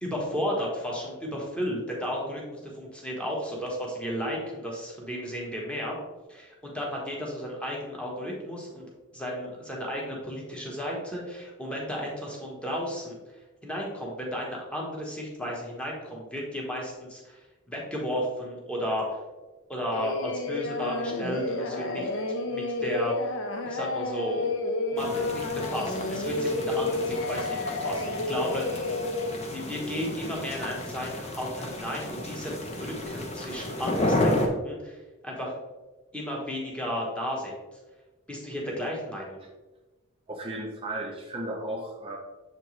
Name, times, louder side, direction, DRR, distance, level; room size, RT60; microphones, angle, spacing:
voice 1, 0.0-6.0 6.3-8.9 9.1-13.2 13.6-17.4 17.7-19.2 19.7-22.1 22.5-23.3 23.6-24.4 24.9-28.8 29.4-32.5 32.8-35.6 36.1-37.6 38.3-39.4, equal, 5° left, -3 dB, 1.3 m, -33 dB
Singing, 19.9-29.3, left 2 dB, 60° left, 0.7 m, -31 dB
sound 1, 25.0-34.5, left 1 dB, 30° left, 0.8 m, -32 dB
voice 2, 40.3-42.2, right 1 dB, 25° right, 1 dB, 0.6 m, -34 dB
7.3 x 4.4 x 3.2 m, 1.2 s
head